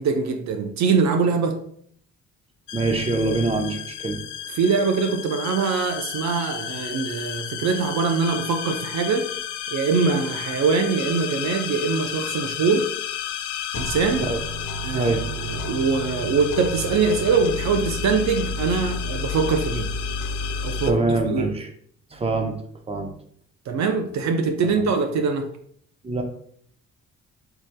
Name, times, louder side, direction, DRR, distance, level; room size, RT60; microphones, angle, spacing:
voice 1, 0.0-1.5 4.5-9.3 9.7-12.9 13.7-14.3 14.8-15.1 15.4-19.9 20.6-21.0 21.3-21.5 23.7-25.5, right 5 dB, 65° right, 5 dB, 0.6 m, -23 dB
sound 1, 2.7-20.9, left 6 dB, 85° left, 0.5 m, -31 dB
voice 2, 2.7-4.2 14.2-14.4 14.9-15.3 20.8-21.7 22.1-22.5 22.9-23.1 24.6-24.9 26.0-26.2, right 3 dB, 20° right, 4 dB, 0.8 m, -24 dB
7.9 x 2.9 x 2.2 m, 0.63 s
cardioid pair, 90°, 30 cm